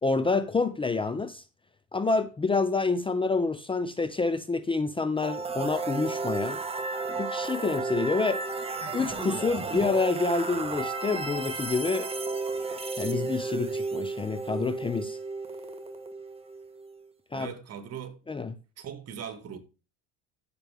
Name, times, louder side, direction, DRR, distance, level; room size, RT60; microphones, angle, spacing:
voice 1, 0.0-1.4 1.9-6.6 7.0-8.4 8.9-12.1 13.0-15.2 17.3-17.5 18.3-18.5, left 4 dB, 15° left, 0.7 m, -28 dB
sound 1, 5.2-17.0, right 3 dB, 15° right, 1.7 m, -33 dB
voice 2, 17.3-18.2 18.8-19.6, right 8 dB, 45° right, 2.1 m, -39 dB
14.0 x 6.8 x 3.6 m
supercardioid pair, 100°, 36 cm